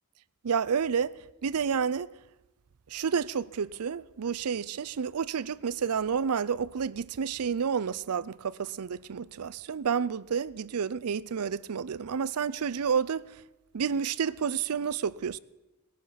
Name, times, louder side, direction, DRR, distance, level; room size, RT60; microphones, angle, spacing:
voice 1, 0.4-1.1 1.4-2.1 2.9-13.2 13.7-15.4, right 6 dB, 85° right, 0.5 m, -30 dB
18.5 x 12.0 x 5.8 m
head